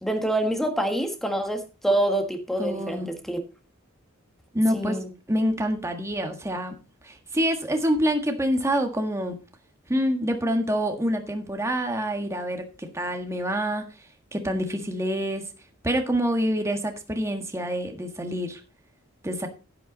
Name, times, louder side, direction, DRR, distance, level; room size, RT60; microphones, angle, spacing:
voice 1, 0.0-3.4 4.7-5.1, right 1 dB, ahead, 6 dB, 1.8 m, -26 dB
voice 2, 2.6-3.1 4.5-5.0 5.3-6.7 7.0-9.4 9.9-13.8 14.3-15.4 15.8-18.6 19.2-19.5, equal, 15° right, 4 dB, 1.5 m, -26 dB
10.5 x 8.9 x 4.0 m, 0.31 s
head